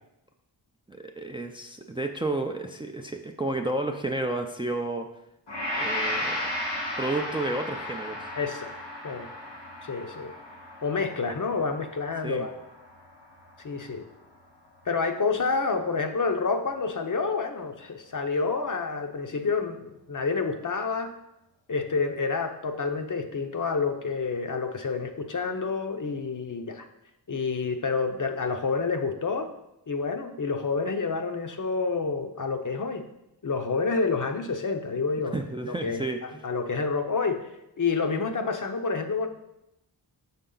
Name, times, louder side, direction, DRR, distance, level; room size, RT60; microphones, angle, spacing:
voice 1, 0.9-5.1 5.8-6.4 7.0-8.3 12.2-12.5 35.3-36.4, right 2 dB, 10° right, 4 dB, 0.4 m, -31 dB
Gong, 5.5-13.8 14.2-14.4, left 1 dB, 90° left, 2.5 m, -35 dB
voice 2, 8.4-8.7 9.0-9.3 9.8-10.3 10.8-12.5 13.6-14.1 14.9-21.1 21.7-26.9 27.3-29.5 29.9-33.0 33.4-35.4 35.7-36.0 36.4-37.5 37.8-39.3, left 4 dB, 45° left, 6 dB, 0.7 m, -28 dB
6.9 x 5.5 x 3.8 m, 0.88 s
wide cardioid pair, 95°, 43 cm